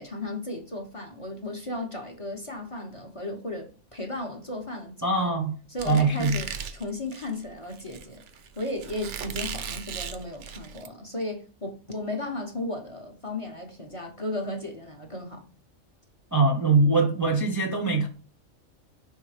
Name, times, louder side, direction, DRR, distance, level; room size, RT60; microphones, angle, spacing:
voice 1, 0.0-5.3 5.7-8.2 8.6-15.4, left 1 dB, 25° left, 0.9 m, -35 dB
voice 2, 5.0-5.6 5.8-6.4 16.3-18.1, right 3 dB, 20° right, 0.6 m, -22 dB
Squeak, 5.8-10.9, right 7 dB, 65° right, 0.9 m, -37 dB
5.5 x 3.5 x 4.9 m
omnidirectional pair, 1.4 m